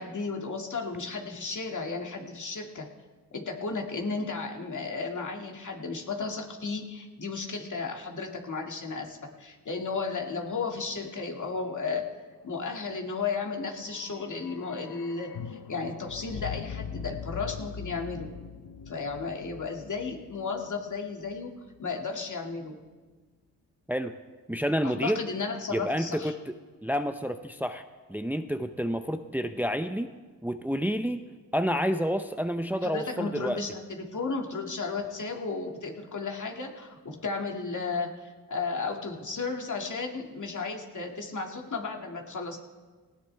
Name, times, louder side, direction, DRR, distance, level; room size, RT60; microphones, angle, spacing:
voice 1, 0.0-2.9 3.3-12.1 12.4-18.3 18.9-21.5 21.8-22.8 24.8-26.3 32.8-42.6, left 4 dB, 55° left, 1 dB, 2.2 m, -34 dB
sound 1, 13.8-21.8 22.0-22.1, left 7 dB, 85° left, 0.7 m, -42 dB
voice 2, 24.5-25.2 25.7-27.8 28.1-30.1 30.4-31.2 31.5-33.6, equal, 5° right, 8 dB, 0.6 m, -29 dB
18.5 x 17.0 x 3.4 m, 1.3 s
cardioid pair, 70°, 36 cm